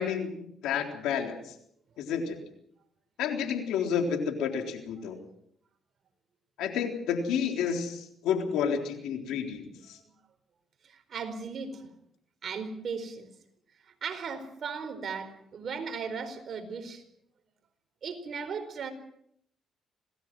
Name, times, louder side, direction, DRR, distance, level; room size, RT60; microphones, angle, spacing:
voice 1, 0.0-1.5 2.0-2.4 3.2-5.2 6.6-10.0, left 7 dB, 90° left, 3 dB, 3.8 m, -30 dB
voice 2, 10.8-11.9 12.4-13.3 13.8-17.0 18.0-18.9, right 5 dB, 55° right, 8 dB, 4.6 m, -37 dB
26.5 x 19.0 x 6.3 m, 0.72 s
cardioid pair, 90°, 0 cm